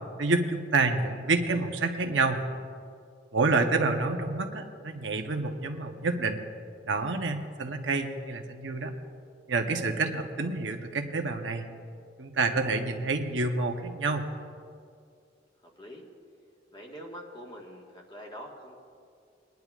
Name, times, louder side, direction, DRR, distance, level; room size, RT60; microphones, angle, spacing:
voice 1, 0.2-2.4 3.3-6.4 6.9-8.9 9.5-11.7 12.2-14.3, right 3 dB, 90° right, 5 dB, 0.8 m, -28 dB
voice 2, 3.4-3.7 15.8-16.1 16.7-18.8, equal, 25° left, -1 dB, 1.5 m, -45 dB
22.0 x 10.5 x 2.4 m, 2.3 s
head